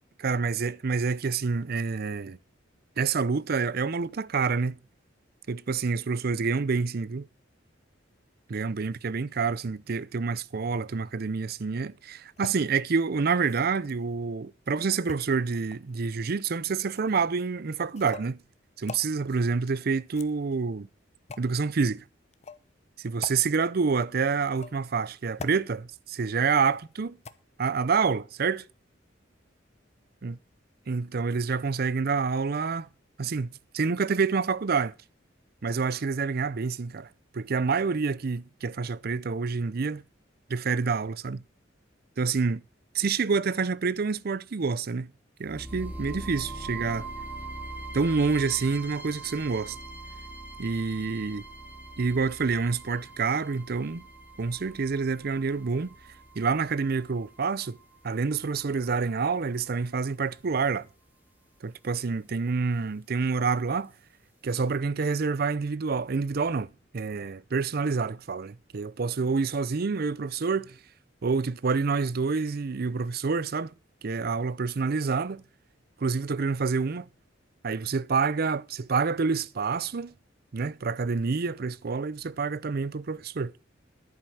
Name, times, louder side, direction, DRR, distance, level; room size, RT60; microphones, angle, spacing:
voice 1, 0.2-2.4 3.0-4.8 5.5-7.3 8.5-18.4 18.8-20.9 21.4-22.0 23.0-27.2 27.6-28.6 30.2-30.4 30.9-32.9 33.2-34.9 35.6-37.1 37.3-40.0 40.5-41.4 42.2-42.6 42.9-45.1 45.4-47.1 47.9-49.8 50.6-51.4 52.0-54.0 54.4-55.9 56.4-57.8 58.0-60.9 61.6-63.9 64.4-70.8 71.2-73.7 74.0-75.4 76.0-77.1 77.6-80.1 80.5-83.5, right 5 dB, 55° right, 0.5 m, -28 dB
sound 1, 12.4-12.5 13.4-14.0 15.1-16.0 16.9-17.1 17.9-18.3 18.9-19.1 20.0-20.6 21.3-21.5 22.3-22.6 23.2-23.4 24.4-24.9 25.4-25.6 26.6-26.9 27.2-27.3, left 4 dB, 35° left, 0.8 m, -43 dB
sound 2, 45.4-59.4, right 2 dB, 10° right, 2.6 m, -43 dB
11.0 x 8.7 x 6.3 m
head